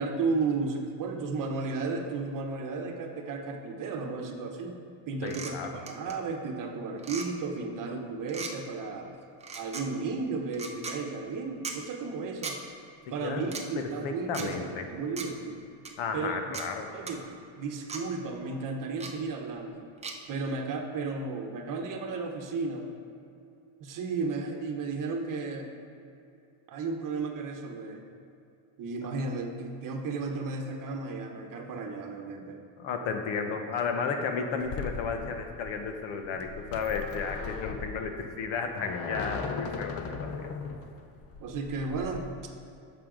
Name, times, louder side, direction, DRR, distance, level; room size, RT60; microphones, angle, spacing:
voice 1, 0.0-4.8 5.1-9.1 9.5-12.6 13.1-15.6 16.1-16.5 16.9-17.2 17.6-19.8 20.3-22.9 23.8-25.7 26.7-28.0 28.8-32.6 41.4-42.3, right 4 dB, 40° right, 3 dB, 1.0 m, -34 dB
voice 2, 5.2-5.8 13.2-13.5 13.8-14.8 16.0-16.9 32.8-40.0 40.4-40.5, left 5 dB, 60° left, 5 dB, 1.2 m, -33 dB
sound 1, 5.3-5.5 5.9-6.1 7.0-7.3 8.3-8.5 9.4-9.8 10.5-11.0 11.6-11.8 12.4-12.6 13.4-13.6 14.3-14.5 15.2-15.3 15.8-15.9 16.5-16.7 17.1-17.2 17.9-18.0 19.0-19.1 20.0-20.1, right 4 dB, 15° right, 0.6 m, -37 dB
sound 2, 34.6-42.2, left 4 dB, 30° left, 0.6 m, -38 dB
11.0 x 7.2 x 3.9 m, 2.7 s
cardioid pair, 145°, 50 cm